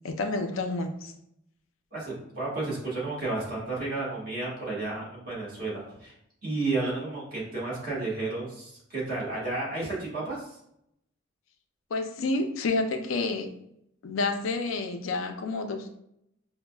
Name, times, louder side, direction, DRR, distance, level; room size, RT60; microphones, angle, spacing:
voice 1, 0.0-1.1 11.9-13.5 14.0-16.0, left 3 dB, 70° left, 6 dB, 0.5 m, -29 dB
voice 2, 1.9-6.1 6.4-10.6, right 2 dB, 45° right, -6 dB, 1.5 m, -32 dB
5.1 x 2.2 x 2.2 m, 0.76 s
head